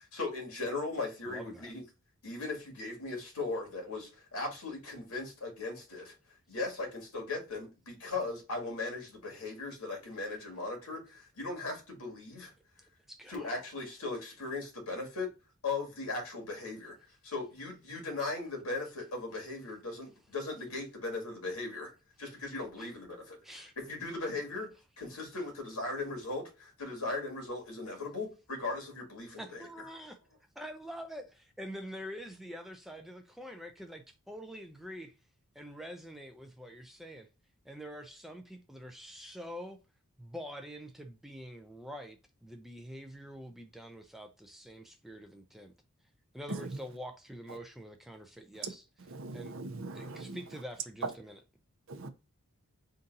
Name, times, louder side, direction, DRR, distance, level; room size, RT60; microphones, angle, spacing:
voice 1, 0.0-1.8 2.2-6.1 6.5-12.5 13.3-15.3 15.6-17.0 17.2-21.9 22.2-23.4 23.8-24.7 25.0-29.7, left 3 dB, 85° left, 1.8 m, -38 dB
voice 2, 1.3-1.7 13.1-13.6 22.8-22.9 23.4-23.7 29.4-30.2 30.6-35.1 35.5-37.3 37.6-39.8 40.2-45.7 46.3-48.8 49.3-49.5 50.0-51.3, equal, ahead, 0.4 m, -46 dB
voice 3, 46.5-46.9 47.5-47.6 48.6-50.6 51.0-51.1 51.9-52.1, right 3 dB, 60° right, 0.6 m, -40 dB
3.8 x 2.8 x 3.9 m
head